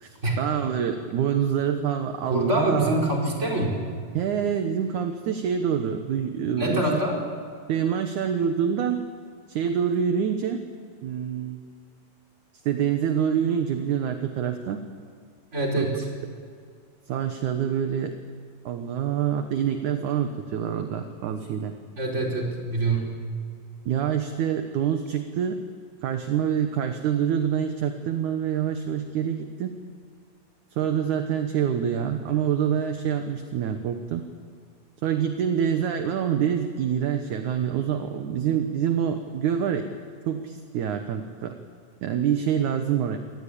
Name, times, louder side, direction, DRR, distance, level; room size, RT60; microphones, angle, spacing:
voice 1, 0.0-3.0 4.1-6.9 7.7-9.0 9.5-10.6 11.0-11.6 12.7-14.8 15.8-15.9 17.1-18.2 18.7-21.7 23.9-25.6 26.0-29.7 30.7-34.2 35.0-39.9 40.3-41.6 42.0-43.2, right 8 dB, 65° right, 6 dB, 2.4 m, -26 dB
voice 2, 2.3-3.8 6.6-7.2 15.5-16.1 22.0-23.1, right 1 dB, 20° right, -1 dB, 4.9 m, -25 dB
25.5 x 19.0 x 8.6 m, 2.2 s
omnidirectional pair, 4.2 m